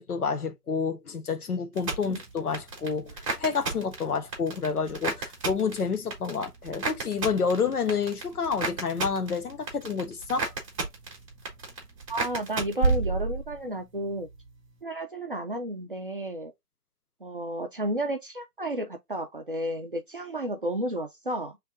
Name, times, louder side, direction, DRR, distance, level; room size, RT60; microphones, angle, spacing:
voice 1, 0.0-10.5, left 5 dB, 70° left, 1.2 m, -29 dB
sound 1, 1.8-13.7 14.0-14.5, right 3 dB, 20° right, 1.3 m, -32 dB
voice 2, 12.1-14.3 14.8-16.5 17.2-21.6, right 1 dB, 35° right, 0.5 m, -32 dB
3.3 x 3.2 x 3.5 m
hypercardioid pair, 155°, 47 cm